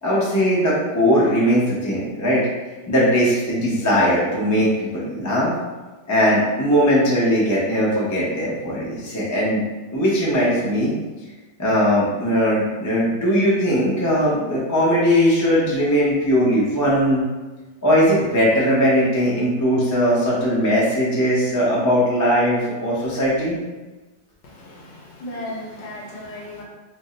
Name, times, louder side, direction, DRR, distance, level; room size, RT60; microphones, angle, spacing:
voice 1, 0.0-2.5 2.9-5.5 6.1-9.6 9.9-10.9 11.6-17.2 17.8-23.6, equal, 30° left, -7 dB, 0.3 m, -19 dB
voice 2, 24.4-26.6, left 1 dB, 75° left, -3 dB, 1.5 m, -35 dB
3.4 x 2.1 x 3.8 m, 1.2 s
omnidirectional pair, 2.0 m